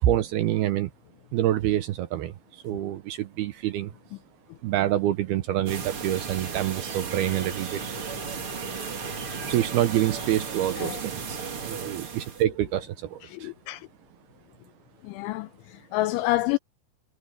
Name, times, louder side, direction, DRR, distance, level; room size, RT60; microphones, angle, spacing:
voice 1, 0.0-0.9 1.3-3.9 4.6-7.8 9.5-13.5, right 13 dB, 80° right, 2.2 m, -27 dB
sound 1, 5.7-12.4, right 5 dB, 40° right, 2.1 m, -34 dB
voice 2, 13.2-13.9 15.0-16.6, left 18 dB, 80° left, 3.0 m, -28 dB
omnidirectional pair, 5.6 m